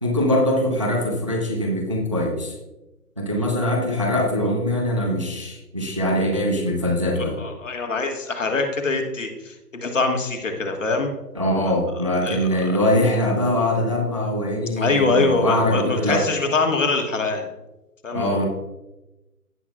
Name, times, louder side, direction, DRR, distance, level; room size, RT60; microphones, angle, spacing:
voice 1, 0.0-2.5 3.2-7.4 11.4-16.3 18.1-18.4, left 1 dB, 20° right, 0 dB, 0.6 m, -22 dB
voice 2, 7.1-11.1 12.2-12.8 14.8-17.5 18.0-18.5, left 3 dB, 50° left, 4 dB, 1.5 m, -24 dB
16.0 x 5.9 x 2.3 m, 1.0 s
figure-of-eight pair, 150°, 48 cm